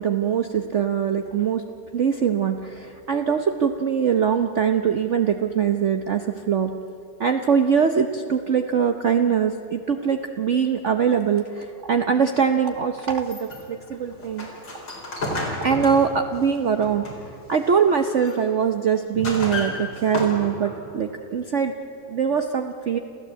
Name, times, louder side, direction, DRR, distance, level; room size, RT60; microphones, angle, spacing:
voice 1, 0.0-1.6 1.9-6.7 7.2-14.5 15.6-17.1 17.5-21.7 22.1-23.0, right 7 dB, 50° right, 6 dB, 1.0 m, -22 dB
sound 1, 13.2-17.4 17.9-18.4 18.9-20.9, left 2 dB, 85° left, 5.0 m, -32 dB
27.0 x 15.0 x 8.2 m, 2.8 s
omnidirectional pair, 1.9 m